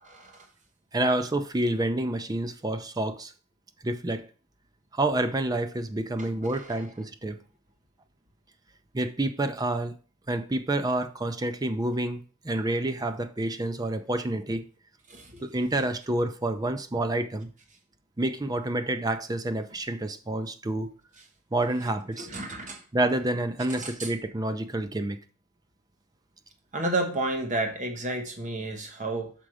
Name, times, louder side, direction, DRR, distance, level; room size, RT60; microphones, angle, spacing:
voice 1, 0.0-0.5 6.2-6.9 15.1-15.4 22.2-22.8 23.7-24.1 26.7-29.3, right 2 dB, 40° right, 1.1 m, -32 dB
voice 2, 0.9-3.3 3.8-4.2 4.9-7.4 8.9-9.9 10.3-14.6 15.4-17.5 18.2-20.9 21.5-22.3 22.9-25.2, right 1 dB, 20° right, 0.5 m, -28 dB
6.1 x 5.1 x 4.9 m
head